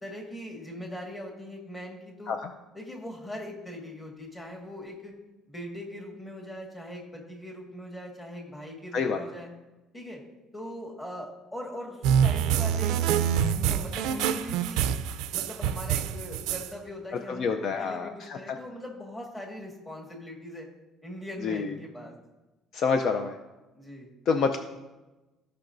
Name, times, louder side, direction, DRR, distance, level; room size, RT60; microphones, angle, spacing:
voice 1, 0.0-2.3 2.7-5.2 5.5-9.5 9.9-10.2 10.5-13.0 13.5-14.9 15.3-20.7 21.0-22.1 23.7-24.1, left 1 dB, 15° left, -1 dB, 1.7 m, -41 dB
sound 1, 12.0-16.7, right 9 dB, 90° right, 0.4 m, -26 dB
voice 2, 17.3-18.6 21.4-21.7 22.7-23.4 24.3-24.6, left 5 dB, 50° left, 6 dB, 0.5 m, -27 dB
16.0 x 5.7 x 2.6 m, 1.1 s
cardioid pair, 150°, 0 cm